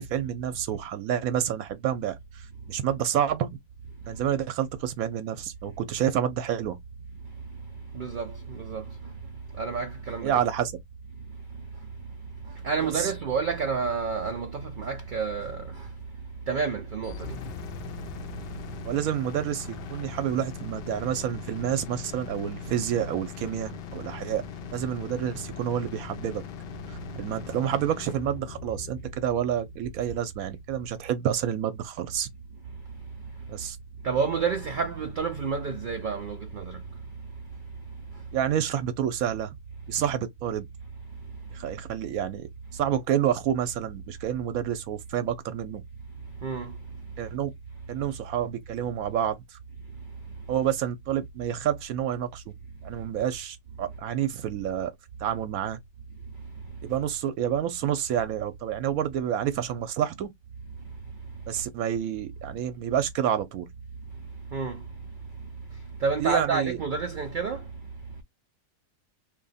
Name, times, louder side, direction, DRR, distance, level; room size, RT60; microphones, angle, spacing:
voice 1, 0.0-3.5 4.1-6.8 10.2-10.7 12.9-13.1 18.8-24.4 24.7-26.4 26.9-32.3 33.5-33.8 38.3-39.5 39.9-40.7 41.5-45.8 47.2-47.5 47.9-49.6 50.5-52.5 52.8-54.9 55.2-55.8 56.8-60.3 61.5-63.7 66.2-66.8, right 10 dB, 80° right, 1.0 m, -29 dB
voice 2, 7.9-8.8 9.6-10.4 12.6-15.7 16.5-17.4 34.0-36.8 46.4-46.7 64.5-64.8 66.0-67.6, right 5 dB, 65° right, 0.4 m, -29 dB
sound 1, 17.0-31.0, left 9 dB, 60° left, 0.6 m, -41 dB
2.8 x 2.5 x 4.0 m
omnidirectional pair, 1.5 m